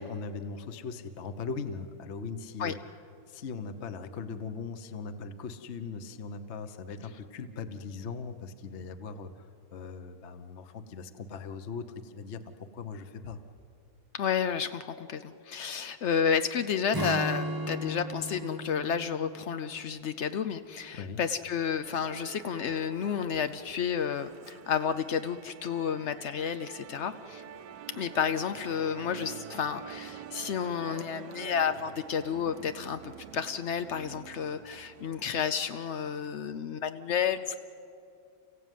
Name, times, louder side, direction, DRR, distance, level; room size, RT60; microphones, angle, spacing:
voice 1, 0.0-2.7 3.3-13.4 20.9-21.2, left 5 dB, 45° left, 10 dB, 1.1 m, -39 dB
voice 2, 14.1-27.4 27.9-37.6, left 7 dB, 80° left, 10 dB, 0.6 m, -31 dB
Acoustic guitar / Strum, 16.9-20.4, right 1 dB, 15° right, 0.8 m, -36 dB
Musical instrument, 21.8-36.5, right 9 dB, 70° right, 1.3 m, -47 dB
30.0 x 16.0 x 9.2 m, 2.6 s
omnidirectional pair, 2.1 m